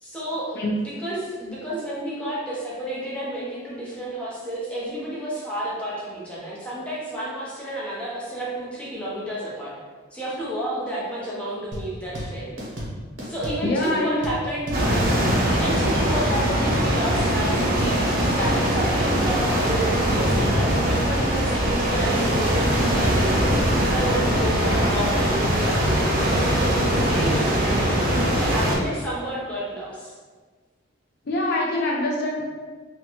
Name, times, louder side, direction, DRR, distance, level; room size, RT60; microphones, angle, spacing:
voice 1, 0.0-9.8 10.1-12.6 13.2-14.9 15.5-18.0 18.4-30.1, right 1 dB, 5° left, -7 dB, 0.5 m, -31 dB
sound 1, 11.7-21.5, equal, 75° right, 0.8 m, -33 dB
voice 2, 13.6-14.4 31.3-32.4, left 1 dB, 55° left, -2 dB, 0.4 m, -24 dB
sound 2, 14.7-28.8, equal, 45° right, 0.5 m, -21 dB
2.6 x 2.1 x 2.8 m, 1.4 s
head